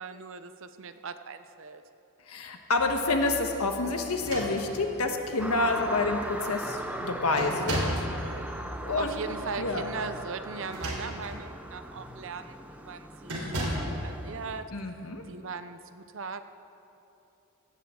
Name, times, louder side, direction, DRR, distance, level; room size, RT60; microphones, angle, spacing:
voice 1, 0.0-1.8 9.0-14.9 15.2-16.4, right 5 dB, 60° right, 10 dB, 0.6 m, -39 dB
voice 2, 2.3-7.9 8.8-9.2 9.6-9.8 14.7-15.2, left 3 dB, 75° left, 4 dB, 1.4 m, -28 dB
sound 1, 2.8-10.2, equal, 45° left, 3.9 m, -47 dB
sound 2, 4.1-5.0 5.9-6.0 6.3-6.7 7.4-8.1 10.5-11.4 12.0-12.2 13.3-14.0, equal, 75° right, 3.5 m, -34 dB
sound 3, 5.4-14.6, right 1 dB, 5° right, 0.5 m, -39 dB
17.0 x 16.0 x 3.8 m, 2.9 s
head